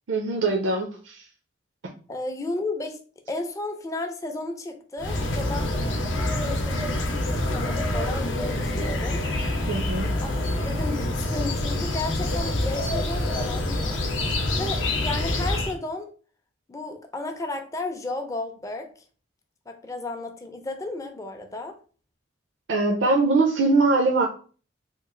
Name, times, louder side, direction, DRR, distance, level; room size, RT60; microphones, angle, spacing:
voice 1, 0.1-1.3 9.7-10.1 22.7-24.3, right 3 dB, 75° right, 1 dB, 0.5 m, -22 dB
voice 2, 2.1-3.0 3.3-5.7 6.1-9.2 10.2-10.3 10.7-14.0 14.6-16.1 16.7-18.9 19.7-21.8, left 2 dB, 15° left, 5 dB, 0.4 m, -33 dB
sound 1, 5.0-15.7, left 1 dB, 75° left, 0.6 m, -26 dB
3.0 x 2.4 x 3.7 m, 0.39 s
head